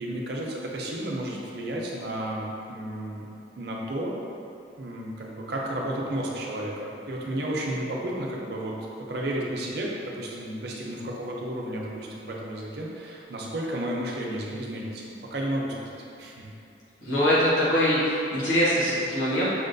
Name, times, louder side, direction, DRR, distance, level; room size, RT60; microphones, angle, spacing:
voice 1, 0.0-3.3 3.6-4.1 4.8-15.0 15.3-16.5, right 1 dB, 60° right, -3 dB, 0.5 m, -32 dB
voice 2, 17.0-19.5, equal, 85° left, -9 dB, 1.1 m, -23 dB
5.6 x 2.2 x 2.6 m, 2.7 s
head